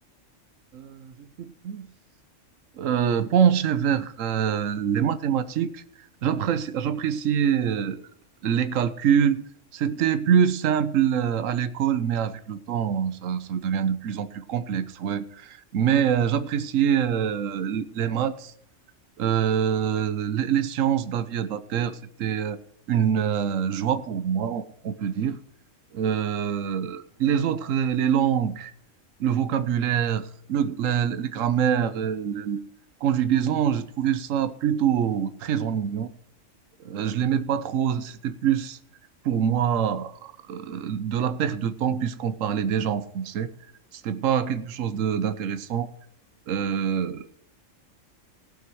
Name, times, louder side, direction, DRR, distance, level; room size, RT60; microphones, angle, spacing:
voice 1, 0.7-1.9 2.7-8.0 8.4-9.4 9.7-18.5 19.2-22.6 22.9-25.4 25.9-28.7 29.2-32.6 33.0-36.1 36.8-38.8 39.2-43.5 43.9-45.9 46.5-47.3, right 8 dB, 80° right, 1.2 m, -25 dB
18.0 x 6.1 x 4.6 m
omnidirectional pair, 1.3 m